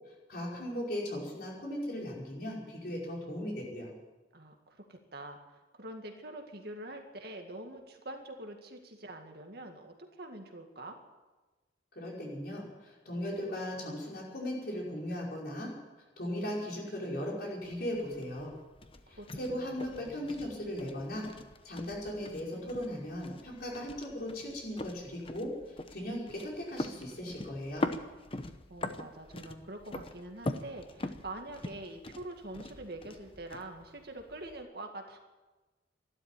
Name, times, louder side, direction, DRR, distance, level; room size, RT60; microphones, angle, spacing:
voice 1, 0.3-3.9 11.9-15.7 16.2-18.5 19.1-21.2 21.6-25.5 25.9-27.9, equal, 55° left, -3 dB, 5.3 m, -37 dB
voice 2, 4.3-11.0 19.2-20.3 28.7-35.2, right 1 dB, 55° right, 4 dB, 2.0 m, -45 dB
sound 1, 17.6-34.6, left 2 dB, 30° left, 0.8 m, -43 dB
13.0 x 12.0 x 9.1 m, 1.2 s
head